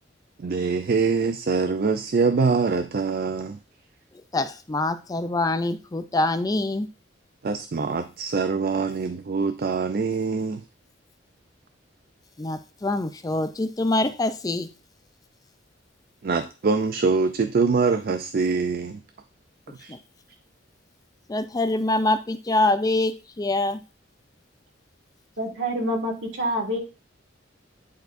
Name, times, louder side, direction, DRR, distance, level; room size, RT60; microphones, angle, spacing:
voice 1, 0.4-3.6 7.4-10.6 16.2-19.0 19.8-19.9, right 4 dB, 50° right, 9 dB, 0.4 m, -24 dB
voice 2, 4.3-6.9 12.4-14.7 19.9-20.0 21.3-23.8, left 2 dB, 20° left, 10 dB, 0.4 m, -25 dB
voice 3, 25.4-26.8, equal, 70° right, 1 dB, 1.9 m, -27 dB
10.5 x 4.4 x 2.6 m, 0.33 s
head